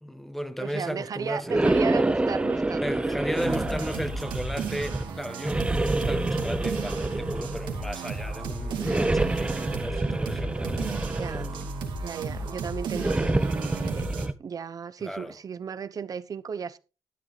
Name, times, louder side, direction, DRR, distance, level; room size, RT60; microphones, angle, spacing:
voice 1, 0.0-1.8 2.8-11.7 15.0-15.3, equal, 5° left, 1.2 m, -35 dB
voice 2, 0.6-3.2 11.1-11.5 12.0-14.1 14.4-16.8, right 6 dB, 50° right, 0.8 m, -35 dB
sound 1, 1.5-5.0 5.4-7.8 8.8-11.6 12.9-14.3, right 2 dB, 15° right, 0.7 m, -27 dB
sound 2, 3.3-14.3, right 4 dB, 85° right, 2.4 m, -34 dB
12.0 x 10.5 x 3.3 m
cardioid pair, 80°, 8 cm